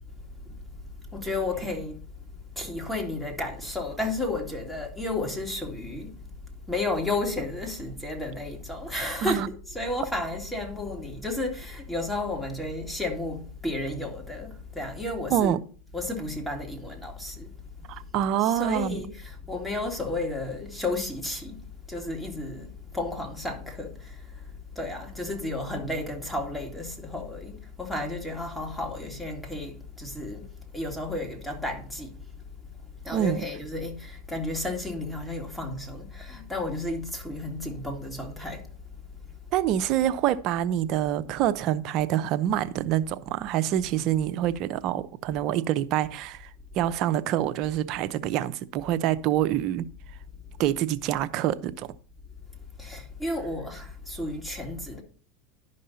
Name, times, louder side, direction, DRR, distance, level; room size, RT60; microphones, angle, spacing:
voice 1, 0.1-15.6 15.9-39.3 52.8-55.0, left 2 dB, 5° left, 2.3 m, -33 dB
voice 2, 17.9-19.0 33.1-33.5 39.5-46.5 46.7-49.9 50.6-51.9, right 11 dB, 50° right, 0.7 m, -26 dB
11.5 x 5.4 x 4.1 m
hypercardioid pair, 105°, 0 cm